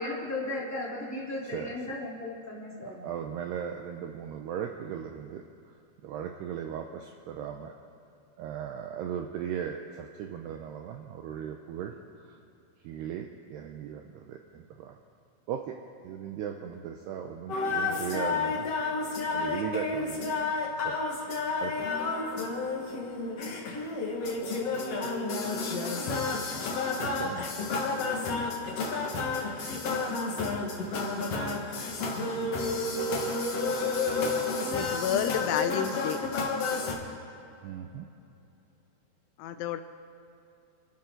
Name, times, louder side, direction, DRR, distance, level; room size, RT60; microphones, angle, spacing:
voice 1, 0.0-3.2, left 2 dB, 5° left, -6 dB, 2.1 m, -36 dB
voice 2, 1.4-1.9 2.8-7.7 8.4-12.4 12.8-15.0 15.5-15.8 16.0-18.7 19.3-20.5 20.8-21.0 21.6-21.9 26.9-27.5 37.6-38.1, right 8 dB, 85° right, 4 dB, 2.4 m, -38 dB
sound 1, 17.5-36.9, left 3 dB, 60° left, 1.7 m, -31 dB
voice 3, 34.7-36.2 39.4-39.8, left 10 dB, 85° left, 9 dB, 3.0 m, -30 dB
27.5 x 13.0 x 3.9 m, 2.7 s
omnidirectional pair, 5.5 m